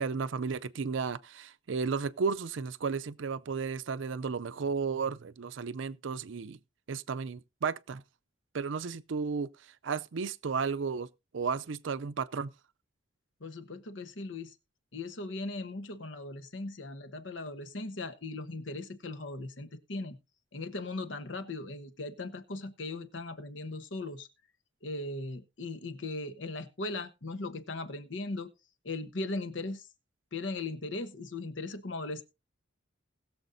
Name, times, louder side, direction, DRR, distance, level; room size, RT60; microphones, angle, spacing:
voice 1, 0.0-6.6 6.9-8.0 8.5-9.5 9.8-11.1 11.3-12.5, right 5 dB, 75° right, 0.5 m, -33 dB
voice 2, 13.4-14.5 14.9-20.2 20.5-24.3 24.8-28.5 28.8-29.9 30.3-32.2, left 2 dB, 75° left, 1.1 m, -38 dB
20.5 x 7.1 x 2.6 m
head